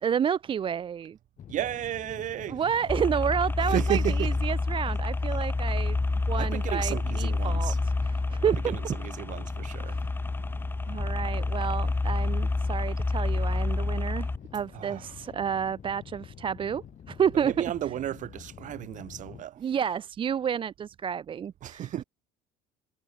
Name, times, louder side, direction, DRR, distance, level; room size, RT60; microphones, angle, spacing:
voice 1, 0.0-1.2 2.5-6.0 6.3-8.8 10.9-14.3 14.5-17.6 19.6-21.9, right 8 dB, 30° right, 0.5 m, -30 dB
sound 1, 1.4-19.4, left 9 dB, 45° left, 7.8 m, -47 dB
voice 2, 1.5-2.6 3.7-4.3 6.4-7.8 8.7-10.0 14.7-15.0 17.4-19.6 21.6-22.0, right 12 dB, 50° right, 1.7 m, -33 dB
sound 2, 2.9-14.4, left 3 dB, 15° left, 1.0 m, -28 dB
hypercardioid pair, 80°, 16 cm